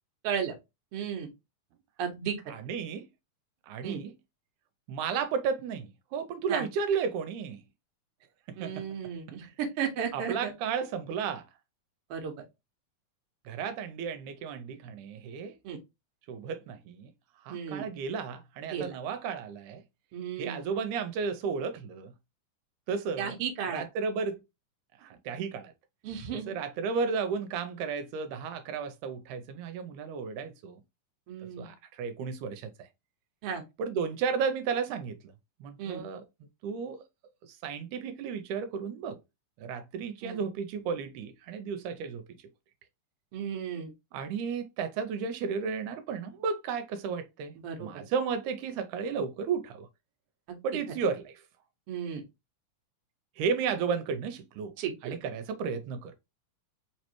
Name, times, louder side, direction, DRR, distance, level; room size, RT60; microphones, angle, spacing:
voice 1, 0.2-0.5 0.9-1.3 2.0-2.3 3.8-4.0 6.5-6.6 8.6-10.5 12.1-12.3 15.6-15.8 17.5-17.9 18.7-18.9 20.1-20.6 23.2-23.8 26.0-26.5 31.3-31.7 33.4-33.6 35.8-36.0 40.2-40.4 43.3-43.9 47.6-47.9 50.5-50.6 51.9-52.2 54.8-55.2, right 7 dB, 65° right, 1.6 m, -34 dB
voice 2, 2.5-3.1 3.7-4.1 4.9-7.6 8.5-8.9 9.4-9.5 10.1-11.4 13.5-15.6 16.3-17.1 17.4-19.8 20.4-22.1 22.9-23.4 23.7-24.4 25.0-25.7 26.3-30.8 31.6-32.9 33.8-35.2 35.6-36.2 36.6-37.0 37.4-39.2 39.6-42.2 44.1-47.5 47.8-49.9 50.6-51.4 53.4-54.7 55.0-56.2, right 6 dB, 85° right, 2.0 m, -33 dB
4.5 x 3.1 x 2.9 m
omnidirectional pair, 3.5 m